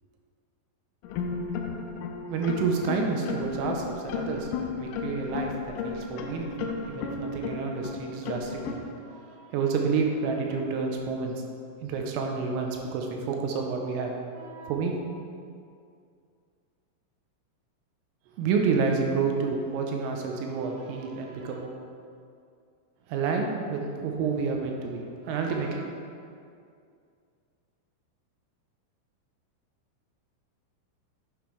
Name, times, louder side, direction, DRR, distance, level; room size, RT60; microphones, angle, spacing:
sound 1, 1.0-8.8, left 5 dB, 85° left, 3.3 m, -34 dB
voice 1, 2.3-8.8 9.0-11.4 11.8-15.0 18.4-21.7 23.1-25.9, right 5 dB, 85° right, 2 dB, 3.4 m, -29 dB
9.3 x 8.0 x 3.4 m, 2.3 s
omnidirectional pair, 5.9 m